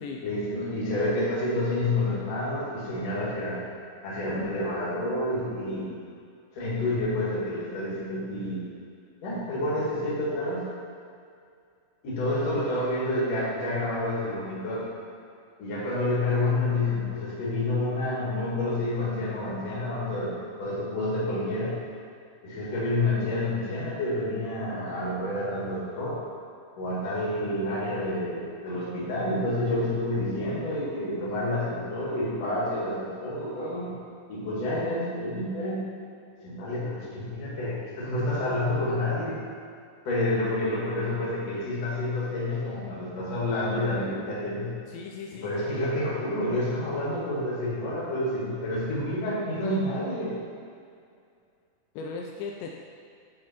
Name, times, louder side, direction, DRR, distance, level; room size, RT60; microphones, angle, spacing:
voice 1, 0.2-3.6 4.0-5.9 6.5-8.7 9.2-10.6 12.0-14.9 15.6-21.7 22.4-26.2 26.8-34.0 34.3-35.8 36.4-39.4 40.0-44.7 45.4-50.4, left 1 dB, 50° left, -7 dB, 2.3 m, -29 dB
voice 2, 12.2-13.0 44.9-45.5 52.0-52.7, left 4 dB, 80° left, 0 dB, 2.7 m, -38 dB
10.5 x 4.7 x 4.4 m, 2.3 s
omnidirectional pair, 5.4 m